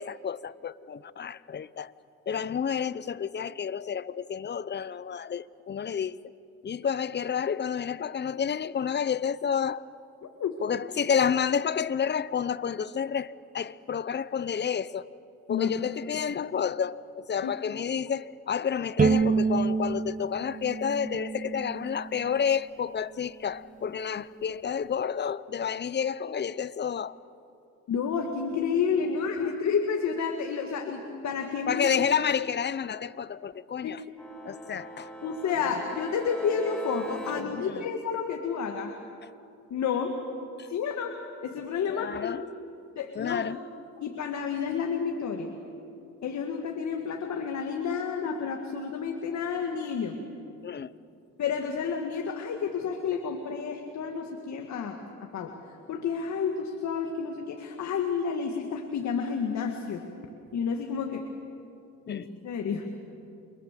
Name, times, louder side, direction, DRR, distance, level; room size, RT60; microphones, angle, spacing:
voice 1, 0.0-1.9 2.3-6.2 6.6-9.8 10.6-15.1 15.5-27.2 31.7-34.0 34.4-35.1 37.4-37.8 40.6-40.7 41.9-42.5 43.1-43.6 50.6-50.9 62.1-62.3, left 7 dB, 35° left, 17 dB, 0.8 m, -30 dB
voice 2, 10.2-10.6 15.5-15.7 17.4-17.5 27.9-31.9 33.8-33.9 35.2-38.9 39.7-40.2 40.7-42.4 43.0-43.5 44.0-45.5 46.2-50.2 51.4-55.5 55.9-60.0 60.5-61.3 62.1-62.9, left 6 dB, 65° left, 4 dB, 2.1 m, -30 dB
Bowed string instrument, 19.0-22.2, right 5 dB, 25° right, 1.0 m, -27 dB
sound 1, 34.2-37.4, left 1 dB, 5° left, 3.5 m, -41 dB
29.0 x 23.5 x 7.6 m, 2.6 s
cardioid pair, 90°, 30 cm